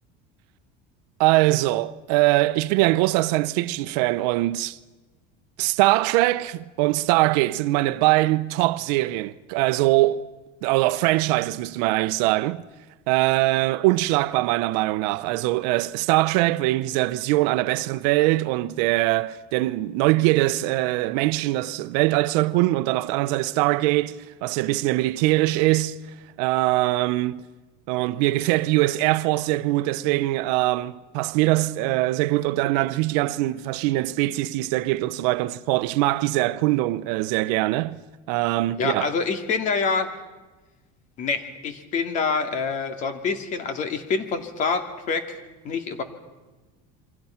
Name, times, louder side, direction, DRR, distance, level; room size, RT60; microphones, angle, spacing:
voice 1, 1.2-4.8 5.6-10.3 10.6-12.6 13.1-26.0 26.4-27.4 27.9-38.0 38.3-39.1, right 18 dB, 75° right, 0.9 m, -22 dB
voice 2, 38.8-40.1 41.2-45.4 45.6-46.0, left 5 dB, 35° left, 2.5 m, -26 dB
28.5 x 24.5 x 5.9 m
cardioid pair, 170°, 21 cm